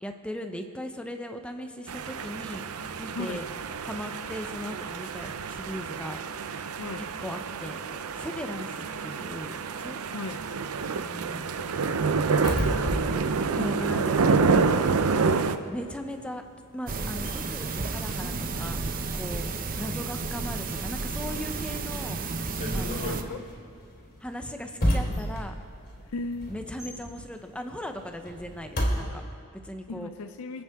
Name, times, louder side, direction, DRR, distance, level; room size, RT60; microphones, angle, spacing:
voice 1, 0.0-3.4 3.8-6.2 7.2-10.0 10.9-11.6 13.6-15.2 15.6-16.4 16.7-19.5 19.7-23.4 24.2-25.6 26.5-30.1, equal, 5° left, 6 dB, 0.7 m, -38 dB
sound 1, 1.9-15.6, right 4 dB, 75° right, 0.6 m, -28 dB
voice 2, 3.2-3.5 6.8-7.1 10.1-10.4 15.3-15.5 23.0-23.4 26.1-26.6 29.9-30.6, left 3 dB, 70° left, 9 dB, 0.5 m, -36 dB
sound 2, 10.4-14.8 15.1-29.0, equal, 45° left, 2.8 m, -34 dB
sound 3, 16.9-23.2, right 3 dB, 40° right, 0.7 m, -32 dB
26.0 x 8.7 x 3.6 m, 2.3 s
head